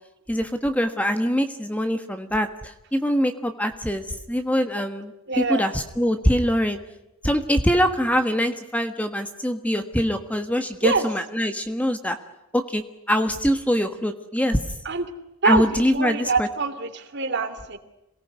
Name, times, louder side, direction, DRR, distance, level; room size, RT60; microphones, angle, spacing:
voice 1, 0.3-6.8 7.2-12.2 12.5-14.7 15.4-16.5, equal, 5° left, 8 dB, 1.4 m, -23 dB
voice 2, 5.3-5.7 10.8-11.0 14.8-15.0 15.4-15.7 15.9-17.8, right 4 dB, 50° right, 9 dB, 2.9 m, -24 dB
27.0 x 19.0 x 9.5 m, 0.90 s
head